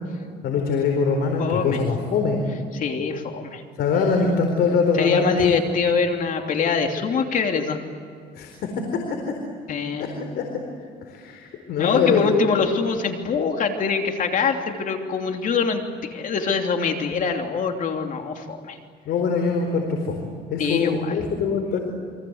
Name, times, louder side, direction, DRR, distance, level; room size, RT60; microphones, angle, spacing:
voice 1, 0.4-2.4 3.8-5.4 8.4-8.5 10.4-10.5 11.1-12.2 19.0-21.8, left 5 dB, 75° left, 4 dB, 4.3 m, -23 dB
voice 2, 1.4-1.8 2.7-3.6 4.9-7.8 9.7-10.1 11.8-18.8 20.6-21.2, left 5 dB, 50° left, 4 dB, 3.1 m, -24 dB
29.5 x 24.0 x 8.1 m, 2.2 s
cardioid pair, 110°, 17 cm